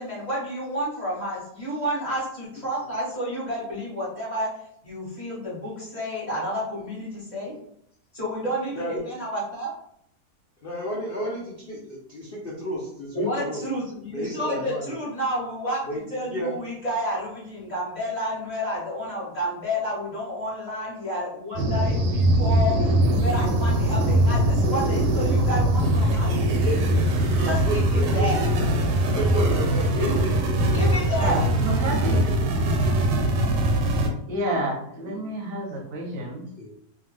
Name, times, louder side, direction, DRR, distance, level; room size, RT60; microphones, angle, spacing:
voice 1, 0.0-4.5 4.8-7.5 8.1-9.7 13.1-15.8 16.1-26.3 27.4-27.6 27.9-28.4 29.9-30.2 30.7-31.5, equal, 30° left, -7 dB, 1.0 m, -30 dB
voice 2, 8.8-9.1 10.6-13.6 14.1-15.0 15.9-16.5 22.5-23.1 26.5-27.0 27.3-28.3 29.2-30.8 31.2-31.4 32.2-32.7 33.0-33.3 34.0-34.2 34.5-34.6 35.1-35.2 36.6-36.7, equal, 85° left, -4 dB, 0.5 m, -33 dB
sound 1, 21.6-34.1, right 1 dB, 90° right, 1.3 m, -22 dB
voice 3, 31.2-32.2 34.3-36.4, right 1 dB, 50° right, 0 dB, 0.7 m, -30 dB
2.8 x 2.4 x 3.2 m, 0.71 s
omnidirectional pair, 1.8 m